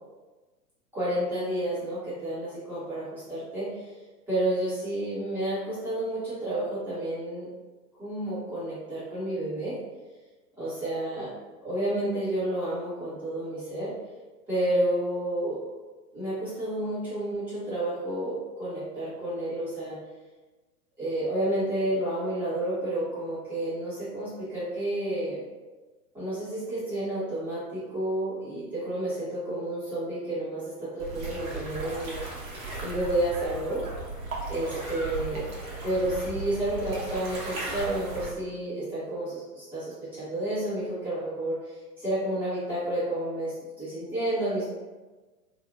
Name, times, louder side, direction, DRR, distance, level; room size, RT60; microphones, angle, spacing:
voice 1, 0.9-3.7 4.3-7.5 8.0-9.8 10.6-11.3 11.6-13.9 14.5-15.6 16.1-20.0 21.0-25.4 26.1-32.2 32.8-33.8 34.5-35.5 35.8-44.7, right 1 dB, 5° right, -13 dB, 0.5 m, -30 dB
sound 1, 31.0-38.3, right 2 dB, 60° right, 0.8 m, -36 dB
2.6 x 2.0 x 2.5 m, 1.2 s
figure-of-eight pair, 105°, 48 cm